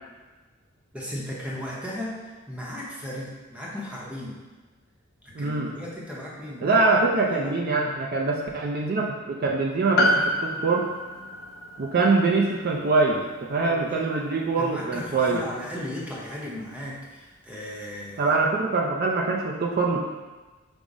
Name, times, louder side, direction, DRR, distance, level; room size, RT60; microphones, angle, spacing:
voice 1, 0.9-4.4 5.2-6.8 7.2-7.6 13.6-14.0 14.6-18.3, left 1 dB, 5° right, -5 dB, 0.7 m, -36 dB
voice 2, 5.3-5.8 6.6-10.9 11.8-15.4 18.2-20.0, right 3 dB, 50° right, -1 dB, 0.4 m, -24 dB
Piano, 10.0-14.6 14.8-14.9, left 1 dB, 50° left, 0.5 m, -29 dB
5.2 x 2.1 x 4.8 m, 1.3 s
head